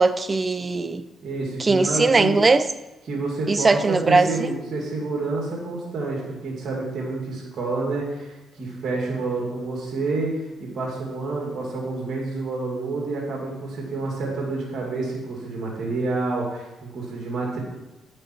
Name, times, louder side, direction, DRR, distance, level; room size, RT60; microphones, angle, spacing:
voice 1, 0.0-1.0 1.6-2.6 3.5-4.5, right 3 dB, 30° right, 0.5 m, -19 dB
voice 2, 1.2-2.4 3.1-17.6, right 3 dB, 60° right, 2.4 m, -28 dB
8.7 x 7.8 x 4.6 m
cardioid pair, 90°, 0 cm